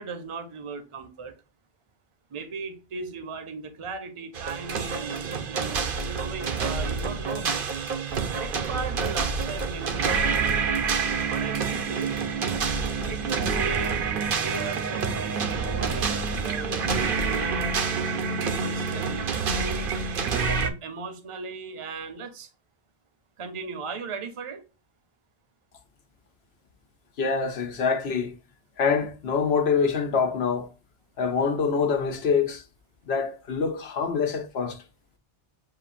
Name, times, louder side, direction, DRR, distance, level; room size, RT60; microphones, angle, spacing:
voice 1, 0.0-1.4 2.3-7.6 8.3-12.1 13.1-14.1 14.4-17.9 18.4-20.1 20.6-22.5 23.4-24.6, right 4 dB, 35° right, 0.7 m, -37 dB
sound 1, 4.3-20.7, right 5 dB, 60° right, 0.9 m, -27 dB
voice 2, 27.2-28.3 28.8-30.7 31.2-32.6 33.1-34.8, left 5 dB, 85° left, 1.0 m, -25 dB
7.5 x 2.6 x 2.5 m
omnidirectional pair, 1.0 m